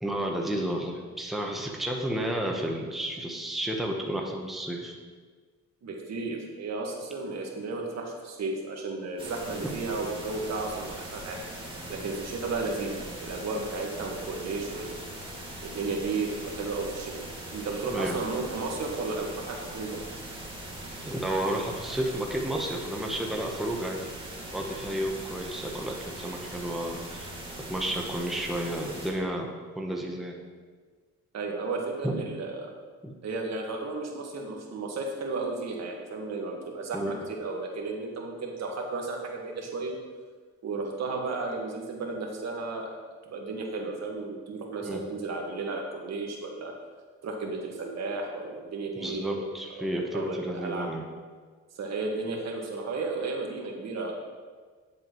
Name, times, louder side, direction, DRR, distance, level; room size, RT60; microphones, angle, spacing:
voice 1, 0.0-5.0 9.6-9.7 17.9-18.3 21.0-24.0 24.5-27.3 27.7-29.5 29.7-30.4 32.0-32.1 33.0-33.1 36.9-37.1 44.8-45.0 49.0-51.0, right 1 dB, ahead, 0 dB, 1.1 m, -31 dB
voice 2, 5.8-11.4 11.9-14.9 15.6-17.1 17.5-20.0 31.3-32.7 33.2-40.0 40.6-43.0 43.2-46.7 47.2-49.3 49.8-49.9 50.1-50.9 51.7-54.1, right 3 dB, 60° right, 0 dB, 1.7 m, -33 dB
sound 1, 9.2-29.1, right 1 dB, 15° right, 2.3 m, -41 dB
9.9 x 7.6 x 3.1 m, 1.5 s
cardioid pair, 90°, 30 cm